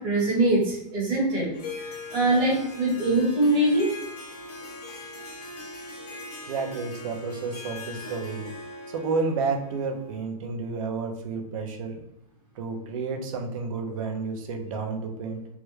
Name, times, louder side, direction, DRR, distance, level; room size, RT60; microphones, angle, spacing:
voice 1, 0.0-1.5 1.8-3.9, right 1 dB, 25° right, -4 dB, 1.2 m, -23 dB
Harp, 1.5-10.3, left 2 dB, 75° left, 1.2 m, -41 dB
voice 2, 6.4-8.4 8.9-12.0 12.5-15.4, right 4 dB, 60° right, 4 dB, 0.6 m, -31 dB
3.4 x 2.1 x 3.1 m, 0.85 s
supercardioid pair, 170°, 19 cm